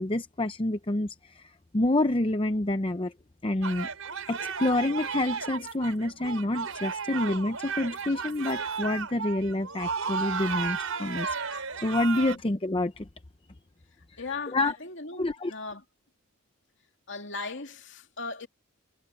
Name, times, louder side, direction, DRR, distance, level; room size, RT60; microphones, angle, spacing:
voice 1, 0.0-3.1 3.4-3.9 4.3-13.1 14.5-14.8 15.2-15.5, left 1 dB, 25° left, 0.7 m, -28 dB
sound 1, 3.6-12.4, right 5 dB, 85° right, 5.3 m, -34 dB
voice 2, 14.2-15.8 17.1-18.5, left 3 dB, 60° left, 2.8 m, -38 dB
head